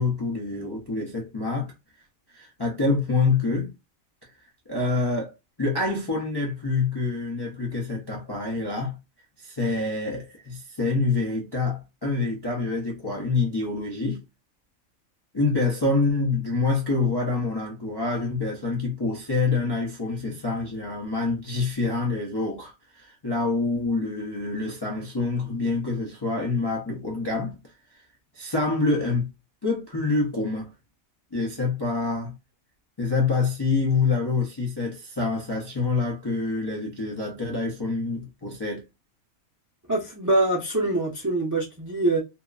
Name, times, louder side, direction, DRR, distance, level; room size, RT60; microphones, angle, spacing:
voice 1, 0.0-1.7 2.3-3.7 4.7-9.0 9.4-14.2 15.3-27.5 28.3-29.3 29.6-30.7 31.3-32.3 33.0-38.8, left 3 dB, 40° left, 0.3 m, -26 dB
voice 2, 39.9-42.2, right 2 dB, 25° right, 0.4 m, -24 dB
2.8 x 2.2 x 2.3 m
omnidirectional pair, 1.5 m